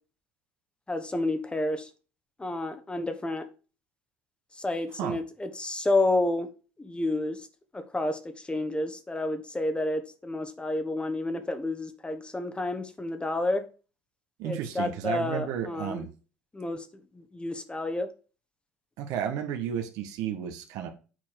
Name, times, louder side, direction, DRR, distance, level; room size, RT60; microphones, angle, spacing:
voice 1, 0.9-1.9 2.4-3.4 4.6-6.5 6.8-7.4 7.7-13.6 14.4-16.0 16.5-16.9 17.1-18.1, left 2 dB, 15° left, 1.5 m, -30 dB
voice 2, 14.4-16.1 19.0-20.9, right 9 dB, 65° right, 1.5 m, -32 dB
8.3 x 4.5 x 4.7 m
hypercardioid pair, 65°, 7 cm